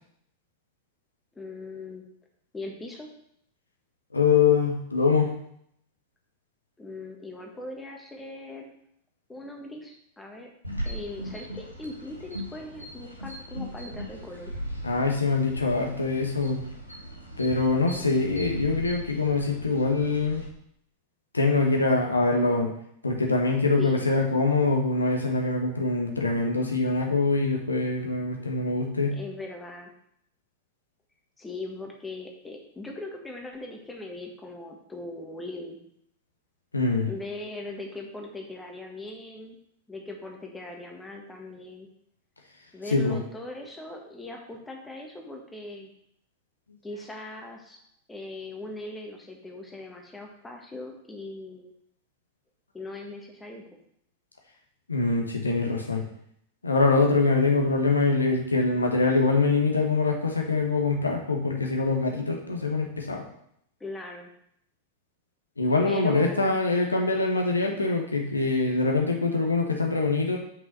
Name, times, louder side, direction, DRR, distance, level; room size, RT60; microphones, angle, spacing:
voice 1, 1.3-2.1 2.5-3.1 6.8-8.7 9.3-10.5 10.8-14.6 23.8-24.1 29.1-29.9 31.4-35.8 37.1-39.6 39.9-41.9 42.7-45.9 46.8-47.8 48.1-51.7 52.7-53.6 63.8-64.3 65.8-66.6, left 2 dB, 10° left, 1 dB, 1.5 m, -40 dB
voice 2, 4.1-5.3 14.8-16.6 17.4-20.4 21.3-22.7 23.0-29.2 36.7-37.1 42.9-43.2 54.9-56.0 56.6-63.2 65.6-70.4, left 3 dB, 80° left, 1 dB, 1.2 m, -24 dB
sound 1, 10.6-20.5, equal, 90° right, 1.5 m, -38 dB
5.7 x 5.6 x 6.1 m, 0.71 s
figure-of-eight pair, 90°, 0 cm